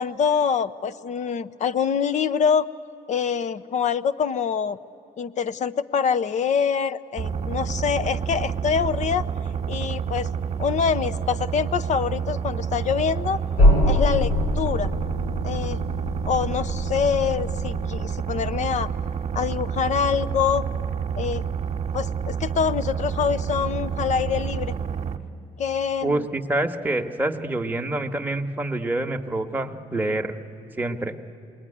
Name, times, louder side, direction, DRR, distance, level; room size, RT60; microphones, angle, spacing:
voice 1, 0.0-2.7 3.1-4.8 5.2-9.2 9.7-10.3 10.6-13.4 13.9-14.9 15.4-15.8 16.3-18.9 19.3-20.7 21.2-21.5 21.9-24.7 25.6-26.3, left 7 dB, 45° left, 15 dB, 0.7 m, -25 dB
sound 1, 7.2-25.2, right 7 dB, 40° right, 1.3 m, -29 dB
sound 2, 13.6-18.3, left 1 dB, 80° left, 7.8 m, -24 dB
voice 2, 26.0-30.3 30.8-31.1, right 2 dB, 10° right, 3 dB, 1.3 m, -26 dB
28.0 x 21.0 x 9.9 m, 2.7 s
cardioid pair, 110°, 17 cm